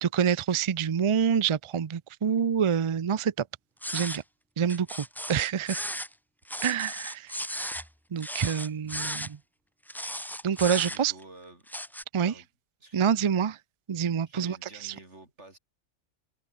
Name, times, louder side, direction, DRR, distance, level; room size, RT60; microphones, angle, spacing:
voice 1, 0.0-3.4 3.9-4.2 4.6-5.8 6.6-7.3 7.6-7.7 8.1-9.4 10.4-11.1 12.1-12.3 12.9-13.6 13.9-14.6 14.8-14.9, right 7 dB, 45° right, 0.4 m, -27 dB
sound 1, 3.8-4.2 4.7-6.1 6.5-7.9 8.2-9.3 9.9-11.2 11.7-12.0, equal, ahead, 1.4 m, -35 dB
voice 2, 10.8-11.7 12.2-12.5 12.8-13.1 14.3-15.6, right 2 dB, 70° right, 5.3 m, -50 dB
open air
omnidirectional pair, 1.2 m